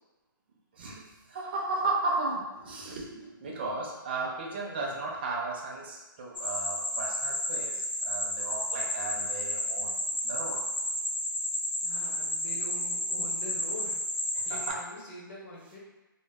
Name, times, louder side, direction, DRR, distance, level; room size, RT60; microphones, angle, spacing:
voice 1, 0.8-10.0 10.2-10.7 14.3-14.8, right 3 dB, 25° right, -2 dB, 0.4 m, -35 dB
sound 1, 6.3-14.7, left 1 dB, 65° left, 0.7 m, -32 dB
voice 2, 11.8-14.0 14.4-15.8, left 1 dB, 35° left, -6 dB, 0.8 m, -44 dB
2.1 x 2.0 x 3.3 m, 1.1 s
hypercardioid pair, 170°, 12 cm